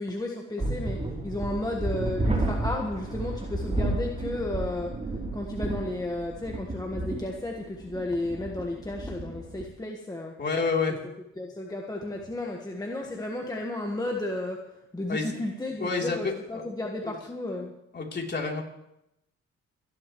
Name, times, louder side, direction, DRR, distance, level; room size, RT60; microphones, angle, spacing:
voice 1, 0.0-4.9 5.3-10.4 11.4-17.7, left 1 dB, 10° left, 0 dB, 1.5 m, -33 dB
sound 1, 0.6-9.6, right 2 dB, 20° right, 3.3 m, -32 dB
voice 2, 10.4-11.0 15.1-15.3 15.8-16.6 17.0-17.1 17.9-18.6, left 4 dB, 35° left, -1 dB, 3.4 m, -28 dB
27.5 x 11.0 x 3.2 m, 0.86 s
cardioid pair, 90°, 30 cm